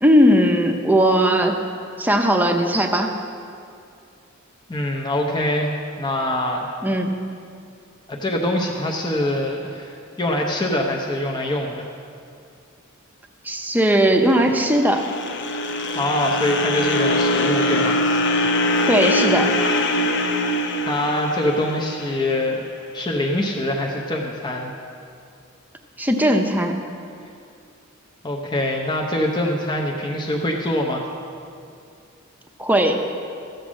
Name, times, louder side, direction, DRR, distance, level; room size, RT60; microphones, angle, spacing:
voice 1, 0.0-1.6 2.0-3.2 6.8-7.2 13.4-15.1 18.9-19.5 26.0-26.8 32.6-33.0, equal, 10° right, 4 dB, 0.8 m, -18 dB
voice 2, 4.7-6.7 8.1-11.9 15.9-18.0 20.8-22.6 22.9-24.7 28.2-31.0, left 1 dB, 20° left, -1 dB, 0.8 m, -24 dB
sound 1, 14.3-22.5, left 1 dB, 60° left, 0.8 m, -22 dB
14.0 x 7.9 x 6.2 m, 2.4 s
head